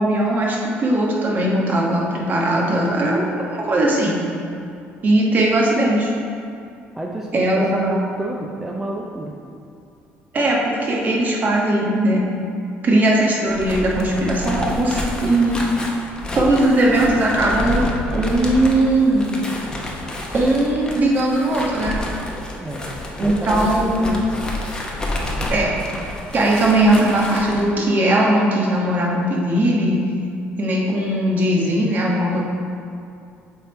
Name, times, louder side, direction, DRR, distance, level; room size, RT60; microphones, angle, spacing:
voice 1, 0.0-4.2 5.0-6.1 7.3-8.0 10.3-12.2 12.8-15.6 16.3-17.8 18.1-19.3 20.3-21.9 23.2-24.2 25.5-25.7 26.3-30.0 30.6-32.4, right 1 dB, 40° right, -3 dB, 1.2 m, -19 dB
voice 2, 6.9-9.3 22.6-22.8 23.2-24.2, right 2 dB, 10° right, -2 dB, 0.5 m, -29 dB
sound 1, 13.5-27.6, left 1 dB, 15° left, 0.9 m, -29 dB
7.0 x 3.6 x 4.5 m, 2.5 s
cardioid pair, 110°, 5 cm